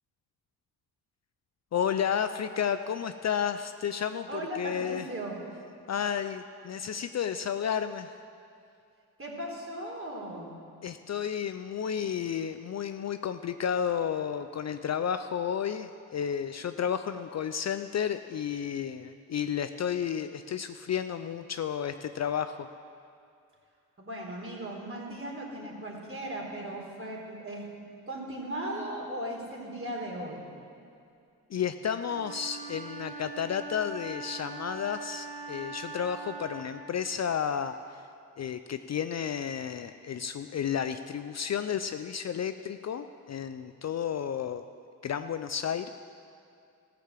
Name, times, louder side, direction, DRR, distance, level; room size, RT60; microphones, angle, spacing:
voice 1, 1.7-5.1 5.9-8.1 10.8-22.7 31.5-38.0 38.4-44.6 45.0-45.9, left 8 dB, 40° left, 10 dB, 0.5 m, -32 dB
voice 2, 4.3-5.4 9.2-10.5 24.0-27.7 28.1-30.4, right 1 dB, 35° right, -2 dB, 3.9 m, -37 dB
Wind instrument woodwind instrument, 32.0-36.9, right 4 dB, 85° right, 1.9 m, -42 dB
15.0 x 6.9 x 7.5 m, 2.4 s
supercardioid pair, 55°, 40 cm